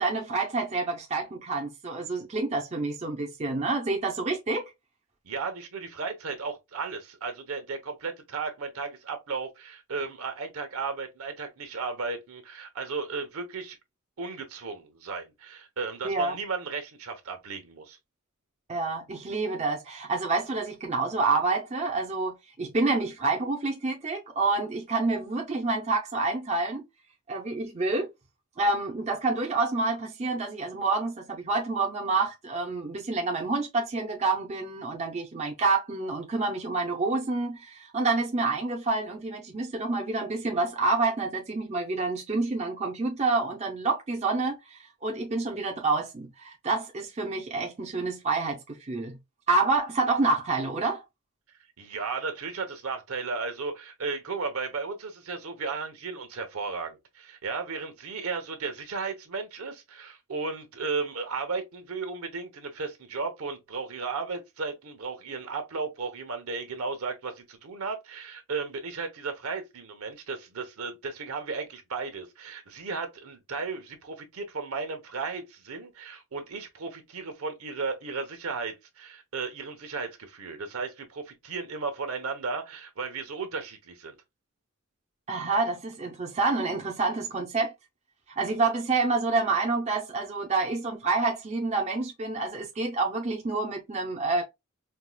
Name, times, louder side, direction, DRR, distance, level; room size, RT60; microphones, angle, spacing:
voice 1, 0.0-4.6 16.0-16.4 18.7-26.8 27.3-28.1 28.6-49.2 49.5-51.0 85.3-87.7 88.4-94.4, right 3 dB, 30° right, 0.6 m, -28 dB
voice 2, 5.2-13.8 14.2-18.0 51.8-84.1, right 4 dB, 75° right, 0.9 m, -35 dB
4.5 x 2.3 x 2.2 m
head